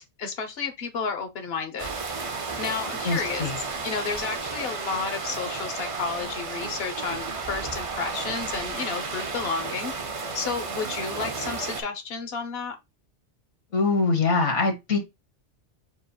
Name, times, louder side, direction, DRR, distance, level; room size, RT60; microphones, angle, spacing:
voice 1, 0.0-1.9 2.6-3.5 3.8-9.9 10.3-12.8, left 5 dB, 60° left, 1.0 m, -31 dB
sound 1, 1.8-11.8, right 4 dB, 35° right, 0.6 m, -33 dB
voice 2, 3.0-3.6 13.7-15.0, left 4 dB, 85° left, 1.5 m, -23 dB
4.9 x 4.1 x 2.3 m
omnidirectional pair, 1.2 m